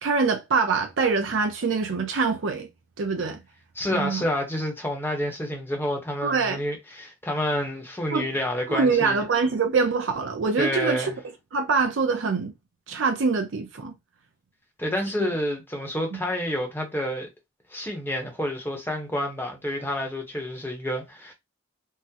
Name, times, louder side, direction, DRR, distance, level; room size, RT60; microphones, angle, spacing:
voice 1, 0.0-2.7 3.0-3.4 3.9-4.2 6.2-6.6 8.1-8.3 8.7-11.1 11.5-12.5 12.9-13.9 15.2-15.3, right 4 dB, 70° right, 0.5 m, -24 dB
voice 2, 3.7-9.2 10.6-11.2 14.8-17.3 17.7-21.3, left 1 dB, 10° left, 0.8 m, -29 dB
3.6 x 2.0 x 2.8 m
head